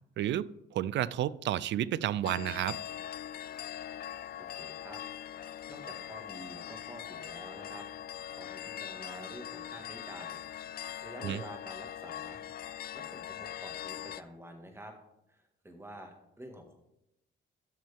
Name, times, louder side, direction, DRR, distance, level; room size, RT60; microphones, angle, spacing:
voice 1, 0.2-2.8 11.2-11.4, right 12 dB, 65° right, 20 dB, 0.4 m, -31 dB
sound 1, 2.2-14.2, left 10 dB, 50° left, 0.4 m, -42 dB
voice 2, 4.4-5.0 5.3-7.9 8.3-12.4 12.9-15.0 15.3-16.7, right 1 dB, 10° right, 4 dB, 1.8 m, -49 dB
13.0 x 6.2 x 3.5 m, 0.86 s
cardioid pair, 90°, 20 cm